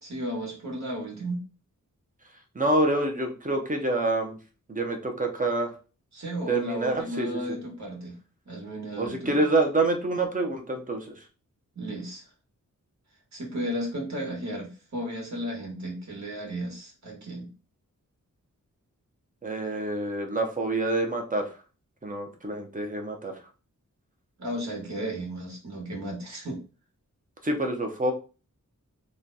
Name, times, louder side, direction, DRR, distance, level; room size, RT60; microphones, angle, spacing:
voice 1, 0.0-1.4 6.1-8.2 8.4-9.4 11.7-12.2 13.3-17.5 24.4-26.6, equal, 60° right, -1 dB, 1.5 m, -34 dB
voice 2, 2.5-4.4 4.7-5.7 6.5-7.4 9.0-11.2 19.4-21.6 22.0-23.3 27.4-28.1, right 2 dB, 25° right, 3 dB, 0.8 m, -27 dB
3.1 x 2.3 x 3.9 m, 0.35 s
wide cardioid pair, 100°, 32 cm